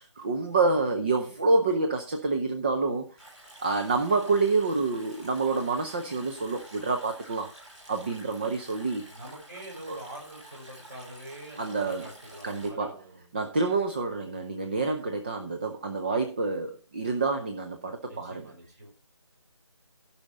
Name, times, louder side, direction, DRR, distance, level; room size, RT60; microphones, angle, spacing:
voice 1, 0.0-3.2 3.6-7.5 7.9-9.0 9.9-10.0 11.6-12.1 12.4-13.0 13.3-18.5, right 3 dB, 20° right, 5 dB, 0.7 m, -27 dB
Stream, 3.2-12.7, right 1 dB, 5° right, 3.7 m, -50 dB
voice 2, 9.0-13.3 18.0-18.9, right 1 dB, 35° right, -2 dB, 6.5 m, -45 dB
15.5 x 5.6 x 5.0 m, 0.33 s
figure-of-eight pair, 160°, 15 cm